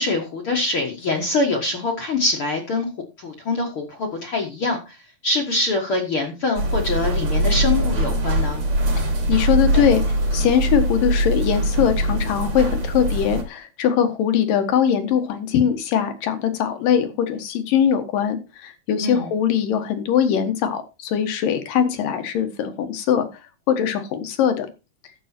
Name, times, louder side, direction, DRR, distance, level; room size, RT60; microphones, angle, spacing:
voice 1, 0.0-2.9 3.2-5.0 5.2-8.6 19.0-19.3, left 2 dB, 50° left, 1 dB, 1.9 m, -24 dB
sound 1, 6.6-13.4, right 1 dB, 50° right, 3.9 m, -22 dB
voice 2, 9.3-10.0 10.3-23.3 23.7-24.7, left 8 dB, 75° left, 8 dB, 3.1 m, -21 dB
12.0 x 7.8 x 4.4 m, 0.28 s
omnidirectional pair, 4.0 m